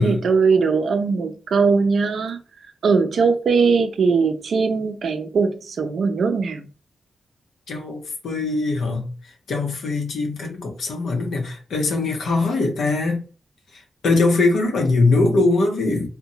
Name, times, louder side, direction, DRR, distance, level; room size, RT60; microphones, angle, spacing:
voice 1, 0.0-2.4 2.8-6.7, right 5 dB, 75° right, 0.4 m, -20 dB
voice 2, 7.7-9.1 9.5-13.2 14.0-16.1, left 3 dB, 85° left, 0.6 m, -21 dB
2.7 x 2.1 x 2.7 m
cardioid pair, 55°, 0 cm